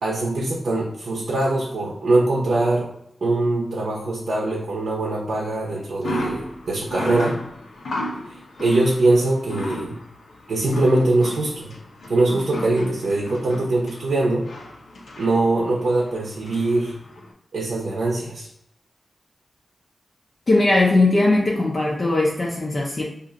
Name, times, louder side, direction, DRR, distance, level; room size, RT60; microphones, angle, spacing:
voice 1, 0.0-2.9 3.2-7.4 8.6-10.0 10.5-11.7 12.1-14.4 15.2-16.9 17.5-18.5, right 2 dB, 75° right, -3 dB, 0.6 m, -22 dB
sound 1, 6.0-17.3, left 1 dB, 75° left, 0.7 m, -34 dB
voice 2, 20.5-23.0, left 2 dB, 35° left, -3 dB, 0.4 m, -19 dB
2.5 x 2.4 x 3.8 m, 0.75 s
wide cardioid pair, 175°, 0 cm